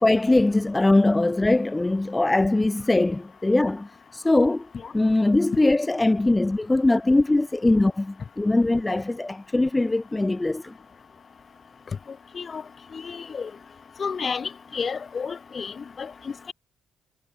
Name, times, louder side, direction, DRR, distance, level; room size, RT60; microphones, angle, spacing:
voice 1, 0.0-4.7 4.9-10.7, left 2 dB, 15° left, 0.8 m, -21 dB
voice 2, 12.9-13.5 14.0-16.5, left 5 dB, 40° left, 2.3 m, -32 dB
cardioid pair, 90°, 0 cm